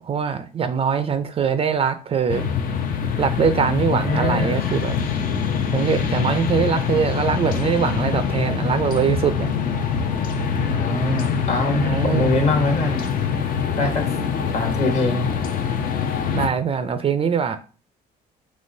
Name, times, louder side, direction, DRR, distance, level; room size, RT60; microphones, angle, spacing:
voice 1, 0.0-2.5 3.2-5.0 5.7-9.5 11.8-12.3 16.3-17.6, right 6 dB, 35° right, 0.4 m, -22 dB
sound 1, 2.3-16.5, left 6 dB, 55° left, 0.7 m, -24 dB
voice 2, 3.8-4.7 10.6-13.0 13.8-14.0 14.5-15.3, left 2 dB, 40° left, 1.4 m, -23 dB
5.2 x 3.1 x 2.7 m
cardioid pair, 110°, 17 cm